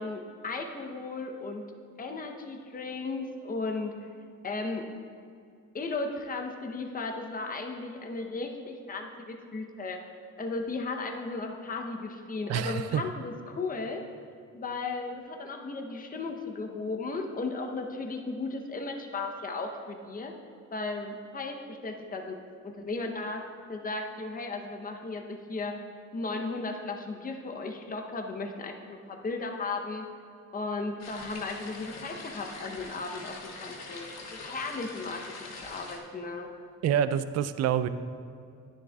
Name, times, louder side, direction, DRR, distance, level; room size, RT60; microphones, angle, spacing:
voice 1, 0.0-1.6 2.0-3.9 4.4-4.9 5.7-10.0 10.4-14.0 14.5-20.3 20.7-22.4 22.6-23.4 23.7-25.7 26.1-30.0 30.5-35.3 35.6-36.5, left 3 dB, 30° left, 3 dB, 0.8 m, -35 dB
voice 2, 12.5-13.0 36.8-37.9, right 9 dB, 55° right, 12 dB, 0.4 m, -27 dB
sound 1, 31.0-36.0, left 3 dB, 60° left, 1.3 m, -43 dB
10.0 x 10.0 x 2.3 m, 2.4 s
cardioid pair, 90°, 30 cm